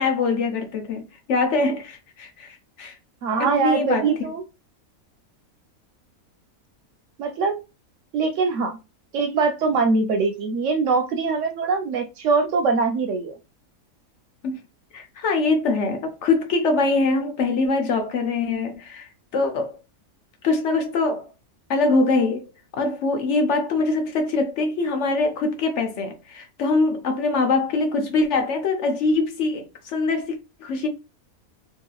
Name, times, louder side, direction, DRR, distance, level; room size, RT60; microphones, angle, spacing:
voice 1, 0.0-3.0 3.4-4.1 14.4-14.6 14.9-19.8 20.4-21.3 21.7-30.9, left 3 dB, 65° left, 0.8 m, -23 dB
voice 2, 3.2-4.4 7.2-7.6 8.1-8.8 9.1-13.3, right 4 dB, 70° right, 0.8 m, -22 dB
2.9 x 2.7 x 2.2 m
omnidirectional pair, 1.5 m